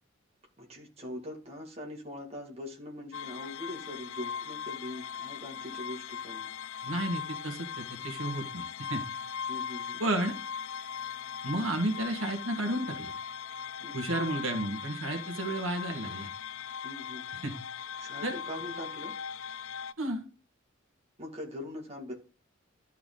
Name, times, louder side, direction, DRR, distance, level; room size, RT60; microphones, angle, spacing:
voice 1, 0.6-6.5 9.5-10.0 13.8-14.0 16.8-17.2 18.0-19.1 21.2-22.1, left 1 dB, 30° right, 0 dB, 2.0 m, -42 dB
sound 1, 3.1-19.9, left 7 dB, 80° left, 0.4 m, -39 dB
voice 2, 6.8-9.0 10.0-10.3 11.4-13.1 13.9-16.3 17.4-17.5 18.2-18.4 20.0-20.2, right 1 dB, 80° right, 4 dB, 1.7 m, -32 dB
12.0 x 4.7 x 3.8 m, 0.35 s
head